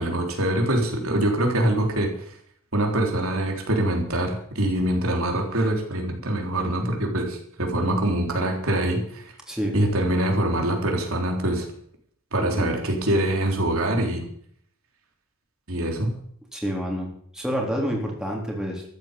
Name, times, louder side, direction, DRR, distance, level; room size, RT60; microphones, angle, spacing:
voice 1, 0.0-2.1 2.7-9.2 9.7-11.7 12.3-14.3 15.7-16.2, right 1 dB, 85° right, 2 dB, 3.8 m, -24 dB
voice 2, 12.4-12.7 16.5-18.8, equal, 5° right, -1 dB, 3.6 m, -28 dB
14.0 x 9.2 x 8.4 m, 0.64 s
head